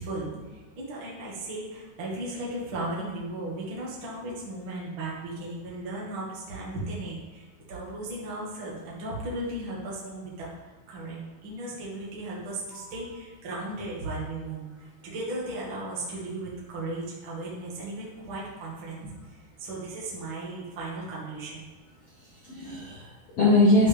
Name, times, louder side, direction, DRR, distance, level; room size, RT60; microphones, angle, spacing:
voice 1, 0.0-10.5 10.9-19.1 19.6-21.6, right 2 dB, 70° right, -5 dB, 1.1 m, -36 dB
voice 2, 12.7-13.0 22.2-23.9, left 2 dB, 85° left, -8 dB, 1.4 m, -23 dB
11.0 x 6.0 x 3.5 m, 1.3 s
omnidirectional pair, 5.8 m